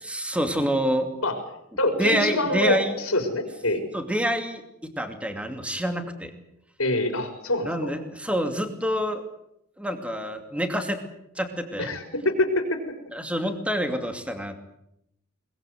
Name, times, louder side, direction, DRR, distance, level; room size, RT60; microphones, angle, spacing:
voice 1, 0.0-1.1 2.0-3.0 3.9-6.3 7.7-9.2 9.8-11.0 11.4-12.0 13.1-14.6, equal, 5° right, 6 dB, 2.6 m, -27 dB
voice 2, 1.8-3.8 6.8-7.9 11.8-12.8, left 1 dB, 70° left, 5 dB, 4.5 m, -25 dB
22.0 x 21.0 x 7.9 m, 0.78 s
head